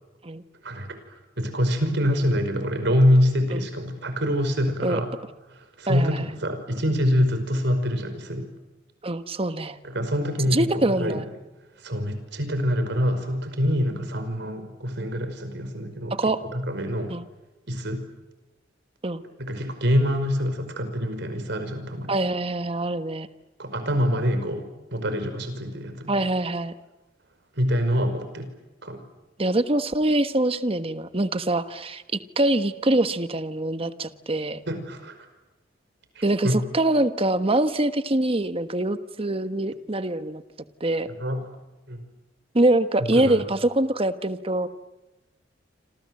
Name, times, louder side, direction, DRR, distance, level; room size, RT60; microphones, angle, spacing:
voice 1, 0.6-5.1 5.5-8.5 9.8-11.2 11.8-16.1 16.4-17.1 17.7-18.0 19.4-22.2 23.6-26.3 27.6-28.5 28.8-29.0 34.7-35.2 36.2-36.6 41.2-41.4 41.9-42.0 43.0-43.4, equal, 65° right, 8 dB, 5.3 m, -25 dB
voice 2, 9.0-9.8 10.5-11.2 16.1-16.4 17.1-17.3 19.0-19.2 22.1-23.3 26.1-26.7 29.4-34.6 36.2-40.4 40.8-41.1 42.5-44.7, right 1 dB, 30° right, 10 dB, 1.3 m, -24 dB
27.5 x 27.0 x 7.8 m, 1.1 s
head